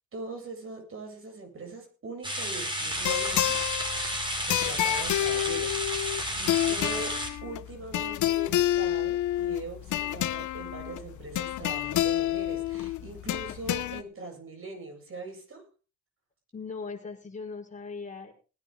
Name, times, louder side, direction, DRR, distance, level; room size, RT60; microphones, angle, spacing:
voice 1, 0.1-3.6 4.4-15.6, right 3 dB, 45° right, 3 dB, 7.8 m, -41 dB
sound 1, 2.2-7.3, equal, 15° right, 5.7 m, -32 dB
sound 2, 2.9-14.0, left 13 dB, 75° left, 0.9 m, -29 dB
voice 2, 16.5-18.3, left 4 dB, 25° left, -1 dB, 5.5 m, -39 dB
19.5 x 10.5 x 3.8 m, 0.36 s
cardioid pair, 90°, 30 cm